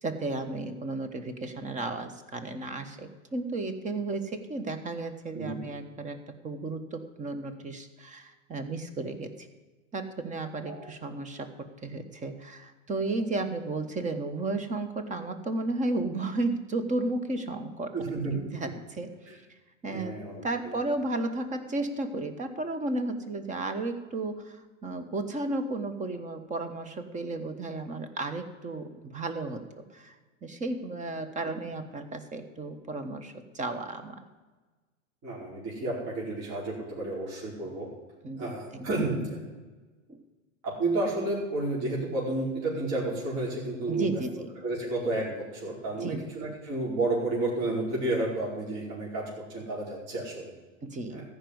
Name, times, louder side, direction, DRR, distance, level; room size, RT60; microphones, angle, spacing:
voice 1, 0.0-6.2 6.4-9.5 9.9-17.9 18.3-19.3 19.8-20.1 20.4-34.2 38.2-39.1 40.1-40.2 43.9-44.5 46.0-46.2 50.8-51.2, right 2 dB, 20° right, 9 dB, 1.3 m, -33 dB
voice 2, 17.9-18.3 19.3-19.4 19.9-20.7 35.2-37.9 38.4-39.4 40.6-44.1 44.6-50.5 51.1-51.2, right 2 dB, 40° right, -5 dB, 4.8 m, -31 dB
14.5 x 5.4 x 9.6 m, 1.3 s
hypercardioid pair, 110°, 38 cm